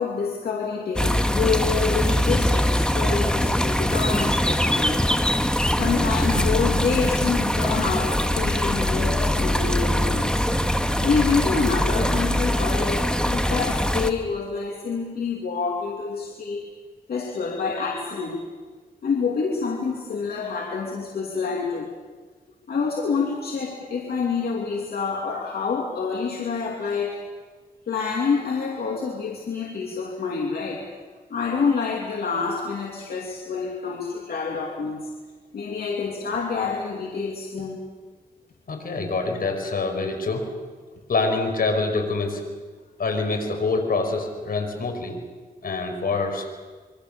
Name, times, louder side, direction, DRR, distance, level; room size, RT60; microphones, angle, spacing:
voice 1, 0.0-5.1 5.7-10.4 11.0-16.7 17.1-18.4 19.0-21.9 22.7-27.2 27.9-30.9 31.3-35.1 35.5-37.8, left 5 dB, 90° left, -1 dB, 2.8 m, -27 dB
sound 1, 1.0-14.1, left 1 dB, 5° left, 1.8 m, -22 dB
voice 2, 38.7-40.4 41.1-42.4 43.0-45.2 45.6-46.4, left 3 dB, 70° left, 4 dB, 5.4 m, -25 dB
26.5 x 24.0 x 7.0 m, 1.4 s
cardioid pair, 75°, 15 cm